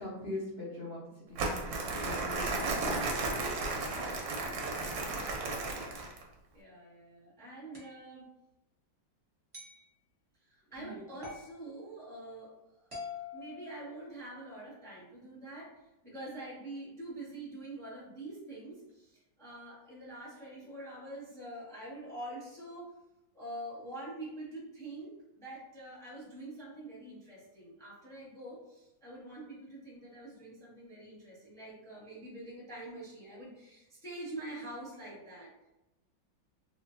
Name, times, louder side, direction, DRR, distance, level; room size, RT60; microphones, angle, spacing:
voice 1, 0.0-1.4 2.0-3.0 10.7-10.9, left 2 dB, 70° left, -8 dB, 0.5 m, -41 dB
Crumpling crinkling, 1.4-6.2, right 3 dB, 65° right, 1.0 m, -34 dB
voice 2, 6.5-8.3 10.4-22.9 23.3-35.5, right 1 dB, ahead, -7 dB, 0.8 m, -45 dB
sound 1, 7.7-8.0 9.5-9.8 11.2-11.5 12.9-14.3, left 5 dB, 30° right, 0.6 m, -45 dB
3.7 x 2.5 x 2.5 m, 0.93 s
omnidirectional pair, 2.1 m